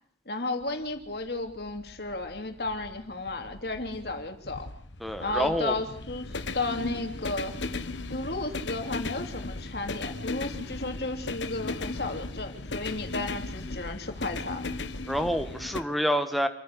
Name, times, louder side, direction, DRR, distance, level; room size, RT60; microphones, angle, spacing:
voice 1, 0.3-4.7 5.2-7.5 8.1-14.8, left 2 dB, 60° left, 5 dB, 3.0 m, -33 dB
sound 1, 0.6-15.8, left 3 dB, 90° left, 1.3 m, -37 dB
voice 2, 5.0-5.8 15.1-16.5, equal, ahead, 7 dB, 1.5 m, -27 dB
27.0 x 10.0 x 9.9 m, 0.63 s
head